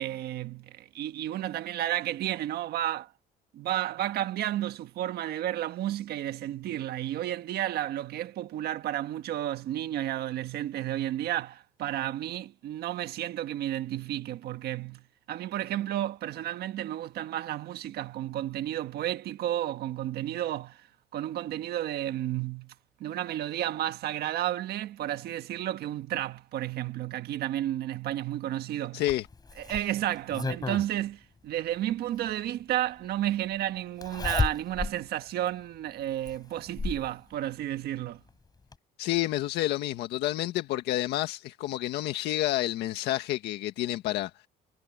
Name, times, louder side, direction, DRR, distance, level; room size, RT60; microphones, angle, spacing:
voice 1, 0.0-3.1 3.5-15.0 15.3-20.9 21.1-22.7 23.0-29.0 29.6-38.2, right 13 dB, 70° right, 1.4 m, -32 dB
voice 2, 28.9-29.3 39.0-44.3, left 15 dB, 85° left, 1.7 m, -29 dB
Zipper (clothing), 29.1-30.9 32.3-32.4 34.0-35.0 35.5-35.6 36.3-37.1 38.3-38.4 38.7-38.8, left 4 dB, 25° left, 5.8 m, -32 dB
cardioid pair, 110°, 17 cm